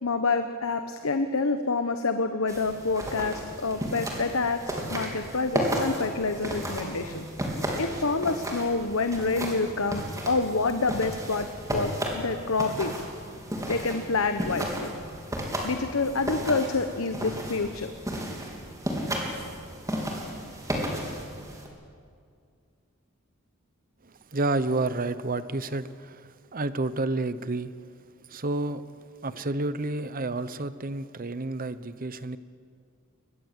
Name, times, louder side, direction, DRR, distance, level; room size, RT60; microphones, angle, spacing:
voice 1, 0.0-7.3 7.8-13.0 13.7-14.9 15.6-17.9, left 3 dB, 80° left, 8 dB, 1.1 m, -27 dB
sound 1, 2.5-21.7, equal, 15° right, 3.7 m, -33 dB
voice 2, 24.0-27.7 28.3-28.8 29.2-32.4, right 2 dB, 45° right, 14 dB, 0.9 m, -30 dB
23.5 x 20.0 x 8.2 m, 2.2 s
head